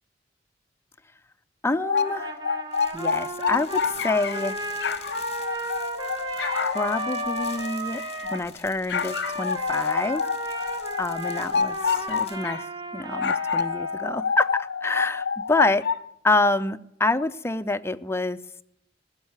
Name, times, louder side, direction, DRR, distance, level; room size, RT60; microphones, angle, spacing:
voice 1, 1.6-2.4 2.9-4.6 6.6-10.3 11.0-12.6 12.9-15.8 16.2-18.4, left 2 dB, 15° left, 11 dB, 0.5 m, -27 dB
sound 1, 1.7-4.5 4.8-8.4 8.9-12.6 13.1-16.0, left 6 dB, 70° left, 0.7 m, -28 dB
Trumpet, 2.0-8.4 8.9-14.2, right 2 dB, 25° right, 1.1 m, -35 dB
sound 2, 2.7-12.4, left 6 dB, 35° left, 1.9 m, -47 dB
15.0 x 6.5 x 9.5 m, 0.77 s
head